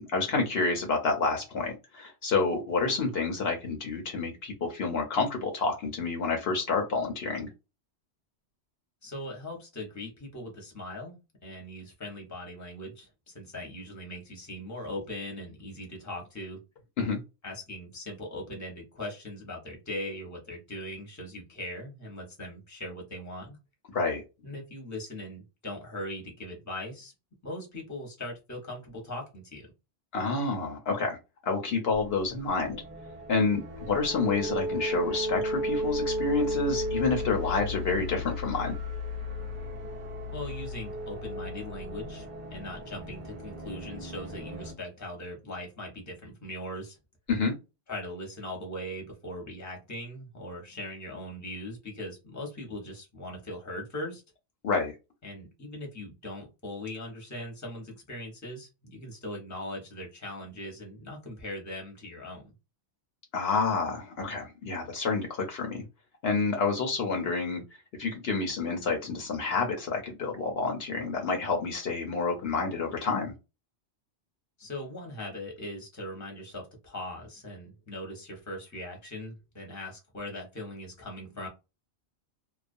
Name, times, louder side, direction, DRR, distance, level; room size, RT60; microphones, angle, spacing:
voice 1, 0.0-7.5 17.0-17.2 23.9-24.2 30.1-31.2 31.4-32.8 33.3-38.7 47.3-47.5 54.6-54.9 63.3-65.8 66.2-67.6 68.0-73.3, left 4 dB, 65° left, 2 dB, 0.9 m, -29 dB
voice 2, 9.0-16.6 17.4-23.6 24.4-27.1 27.4-29.7 40.3-47.0 47.9-54.2 55.2-62.5 74.6-81.5, left 1 dB, 15° left, 0 dB, 0.8 m, -40 dB
sound 1, 31.9-44.7, equal, 55° right, 0.7 m, -34 dB
2.4 x 2.1 x 2.5 m, 0.27 s
omnidirectional pair, 1.1 m